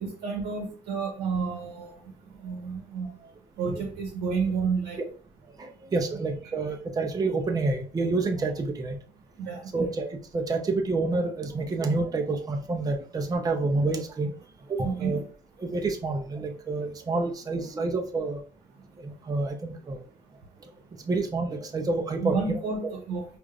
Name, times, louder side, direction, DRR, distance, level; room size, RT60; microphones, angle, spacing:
voice 1, 0.0-3.3 3.6-5.0 9.3-9.7 14.8-15.2 22.2-23.3, right 5 dB, 75° right, 1 dB, 0.9 m, -31 dB
voice 2, 5.6-9.0 9.7-10.1 10.3-14.3 14.7-15.2 15.6-18.4 19.0-20.0 21.1-22.9, right 3 dB, 20° right, 3 dB, 0.5 m, -28 dB
4.9 x 2.4 x 2.3 m, 0.43 s
cardioid pair, 110°, 17 cm